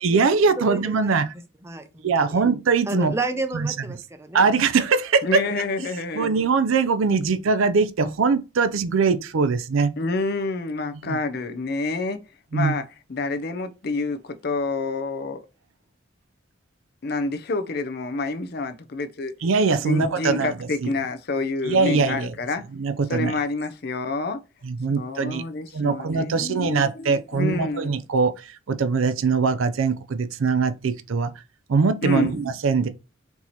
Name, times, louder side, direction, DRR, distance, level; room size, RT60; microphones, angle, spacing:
voice 1, 0.0-1.3 2.0-3.1 3.5-3.7 4.3-5.4 6.1-9.9 11.0-11.2 12.5-12.7 19.4-20.5 20.8-20.9 21.7-22.3 22.8-23.3 24.6-25.4 25.7-31.3 31.7-32.9, right 4 dB, 75° right, 0.5 m, -22 dB
voice 2, 0.6-1.2 1.6-2.4 2.9-4.5, right 3 dB, 15° right, 0.6 m, -31 dB
voice 3, 5.2-6.3 10.0-12.2 12.5-15.4 17.0-19.3 19.8-22.7 23.1-24.4 24.9-27.9 32.0-32.4, left 3 dB, 50° left, 0.5 m, -28 dB
4.6 x 2.8 x 4.0 m
head